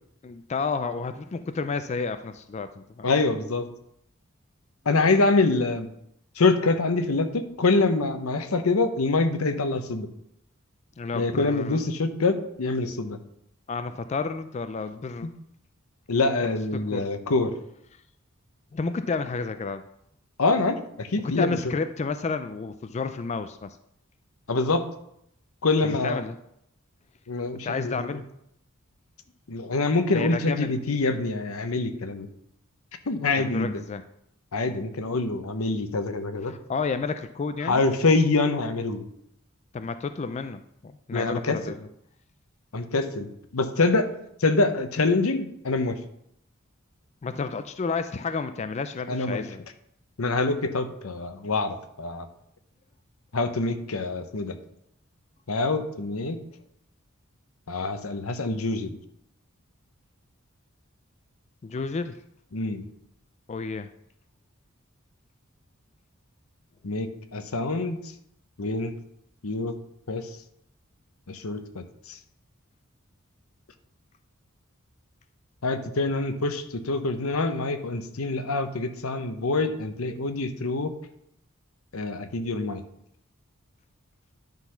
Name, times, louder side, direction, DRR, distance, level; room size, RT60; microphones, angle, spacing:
voice 1, 0.2-3.1 11.0-11.8 13.7-15.3 16.4-17.0 18.7-19.8 21.2-23.8 25.8-26.4 27.6-28.2 30.1-30.7 33.4-34.0 36.5-37.8 39.7-41.8 47.2-49.7 57.8-57.9 61.6-62.2 63.5-63.9, left 4 dB, 30° left, 10 dB, 0.3 m, -31 dB
voice 2, 3.0-3.7 4.9-5.9 6.4-10.1 11.1-13.2 15.2-15.3 16.1-17.5 20.4-21.7 24.5-24.9 25.6-26.2 27.3-28.2 29.5-32.3 33.1-33.8 34.5-36.5 37.6-39.0 41.1-41.8 42.7-44.1 44.4-46.0 49.1-49.4 50.2-52.3 53.3-54.6 55.5-56.4 57.7-59.0 62.5-62.8 66.8-68.0 68.6-68.9 69.4-69.8 70.1-70.3 71.3-72.2 75.6-80.9 81.9-82.8, left 3 dB, 90° left, 9 dB, 0.9 m, -25 dB
10.5 x 4.0 x 5.7 m, 0.75 s
head